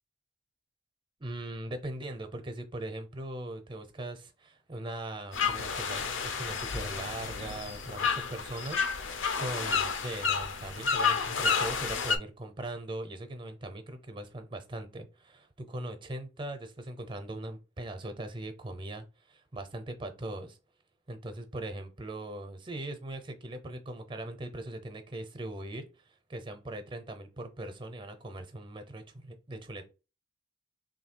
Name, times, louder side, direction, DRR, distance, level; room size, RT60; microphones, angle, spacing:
voice 1, 1.2-20.6 21.1-29.9, right 1 dB, 25° right, 0.6 m, -40 dB
sound 1, 5.3-12.2, left 5 dB, 70° left, 0.5 m, -30 dB
3.1 x 2.7 x 4.4 m
head